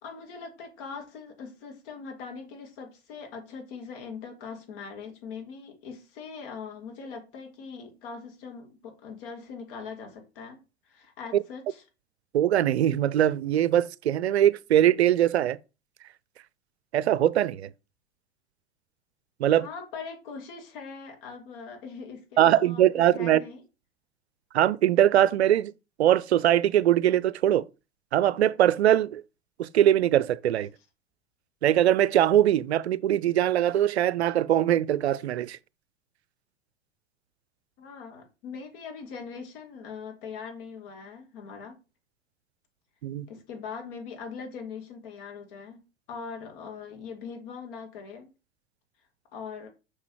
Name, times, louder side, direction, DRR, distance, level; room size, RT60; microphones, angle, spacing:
voice 1, 0.0-11.8 19.6-22.9 23.2-23.6 37.8-41.8 43.3-45.8 46.1-48.3 49.3-49.7, left 5 dB, 55° left, 2.4 m, -41 dB
voice 2, 12.3-15.6 16.9-17.7 19.4-19.7 22.4-23.4 24.5-25.7 26.0-27.6 28.1-29.2 29.6-30.7 31.6-35.6 43.0-43.3, right 11 dB, 75° right, 0.5 m, -22 dB
6.2 x 5.9 x 3.1 m
figure-of-eight pair, 85°, 33 cm